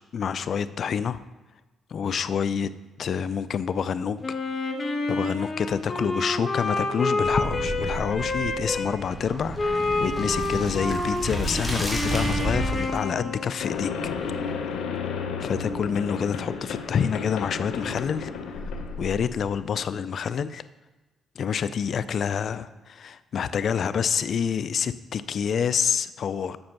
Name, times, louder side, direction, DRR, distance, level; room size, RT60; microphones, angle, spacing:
voice 1, 0.1-1.2 1.9-2.7 3.0-4.4 5.1-14.6 15.4-18.7 19.0-20.6 21.4-26.6, left 7 dB, 55° left, 15 dB, 0.4 m, -27 dB
Wind instrument woodwind instrument, 4.2-8.9 9.6-13.5, left 2 dB, 35° left, 1.3 m, -28 dB
sound 1, 7.2-12.9, right 1 dB, 5° left, 2.9 m, -31 dB
sound 2, 13.6-19.6, left 5 dB, 85° left, 0.9 m, -33 dB
7.8 x 6.6 x 5.9 m, 1.2 s
cardioid pair, 90°, 0 cm